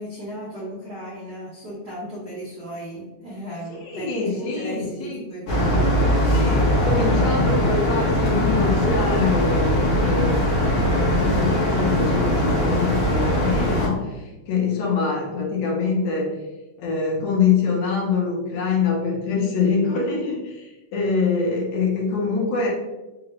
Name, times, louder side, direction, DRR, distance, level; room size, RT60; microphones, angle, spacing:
voice 1, 0.0-6.3, equal, 85° right, -7 dB, 0.8 m, -35 dB
voice 2, 3.9-5.2 6.3-16.3 16.8-22.7, left 4 dB, 70° left, -2 dB, 2.0 m, -25 dB
sound 1, 5.5-13.9, equal, 55° left, 1.7 m, -20 dB
4.9 x 2.4 x 3.0 m, 1.1 s
omnidirectional pair, 3.4 m